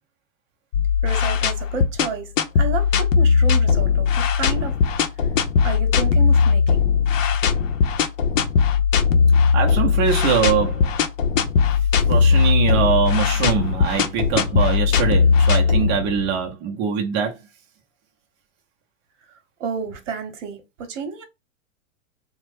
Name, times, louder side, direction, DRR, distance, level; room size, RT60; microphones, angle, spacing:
sound 1, 0.7-16.3, left 6 dB, 70° left, 0.6 m, -19 dB
voice 1, 1.0-4.1 4.3-4.8 5.6-6.9 19.6-21.2, right 5 dB, 65° right, 0.9 m, -31 dB
voice 2, 9.5-10.9 12.1-17.4, right 8 dB, 30° right, 0.6 m, -23 dB
2.9 x 2.1 x 3.3 m
hypercardioid pair, 115°, 40 cm